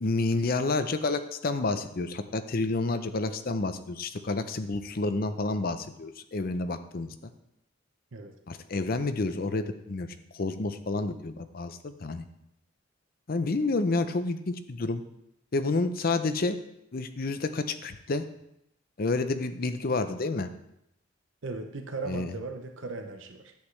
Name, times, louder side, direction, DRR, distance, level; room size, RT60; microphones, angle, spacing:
voice 1, 0.0-7.3 8.5-10.1 10.4-12.2 13.3-15.0 15.5-16.6 16.9-18.2 19.0-20.5 22.1-22.3, left 3 dB, 50° left, 10 dB, 0.6 m, -29 dB
voice 2, 21.4-23.5, right 3 dB, 75° right, 6 dB, 0.7 m, -37 dB
10.0 x 8.2 x 3.3 m, 0.81 s
head